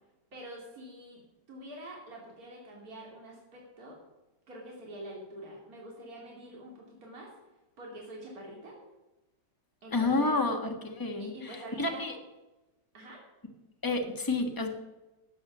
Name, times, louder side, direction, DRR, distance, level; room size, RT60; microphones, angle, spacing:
voice 1, 0.3-1.2 1.5-4.0 4.5-7.3 7.8-8.8 9.8-10.4 11.2-12.0 12.9-13.2, right 1 dB, 50° right, -2 dB, 3.4 m, -46 dB
voice 2, 9.9-12.1 13.8-14.7, left 3 dB, 10° left, 3 dB, 1.5 m, -30 dB
13.0 x 8.7 x 7.4 m, 1.0 s
omnidirectional pair, 1.9 m